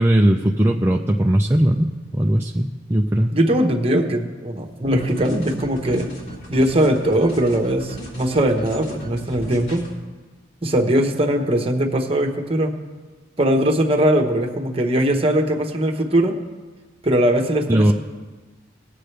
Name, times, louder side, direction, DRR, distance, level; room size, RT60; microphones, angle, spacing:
voice 1, 0.0-1.9 2.1-3.3 17.7-17.9, right 1 dB, 15° right, 0 dB, 0.4 m, -18 dB
voice 2, 3.3-6.1 6.5-9.9 10.6-12.7 13.4-16.4 17.0-17.9, right 1 dB, 30° right, 3 dB, 1.1 m, -20 dB
sound 1, 4.8-9.9, right 1 dB, 70° left, 3.4 m, -37 dB
19.5 x 7.7 x 3.3 m, 1.3 s
head